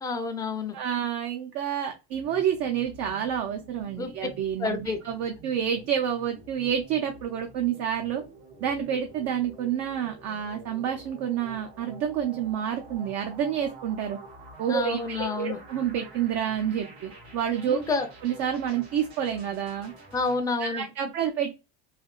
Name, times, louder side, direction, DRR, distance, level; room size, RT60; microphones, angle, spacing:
voice 1, 0.0-0.8 4.0-4.1 4.6-5.0 14.7-15.6 17.7-18.1 20.1-20.8, left 3 dB, 10° left, 5 dB, 0.5 m, -29 dB
voice 2, 0.7-8.2 8.6-14.2 14.6-17.8 18.2-19.9 20.6-21.5, right 9 dB, 55° right, 3 dB, 0.6 m, -29 dB
sound 1, 2.1-20.4, right 2 dB, 90° right, 1.4 m, -48 dB
3.3 x 2.3 x 2.3 m, 0.28 s
supercardioid pair, 120°, 31 cm